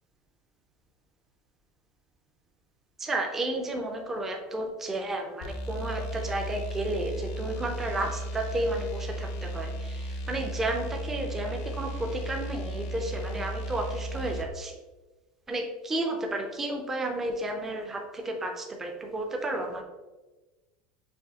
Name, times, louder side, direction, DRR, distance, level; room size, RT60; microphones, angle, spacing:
voice 1, 3.0-14.8 15.5-19.8, right 1 dB, 10° right, 3 dB, 0.4 m, -32 dB
sound 1, 5.4-14.5, right 1 dB, 50° left, 0.5 m, -35 dB
6.3 x 2.6 x 2.7 m, 1.2 s
supercardioid pair, 180°, 3 cm